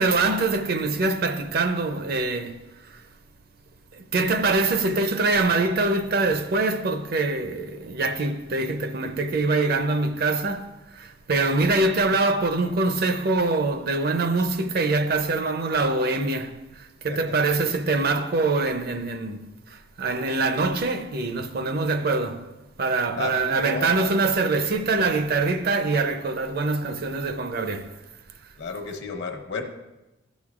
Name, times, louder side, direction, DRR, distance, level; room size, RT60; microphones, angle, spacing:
voice 1, 0.0-3.0 3.9-28.0, right 3 dB, 50° right, 0.5 m, -24 dB
voice 2, 23.2-23.9 28.6-29.6, left 4 dB, 60° left, 1.0 m, -32 dB
13.0 x 6.3 x 2.4 m
head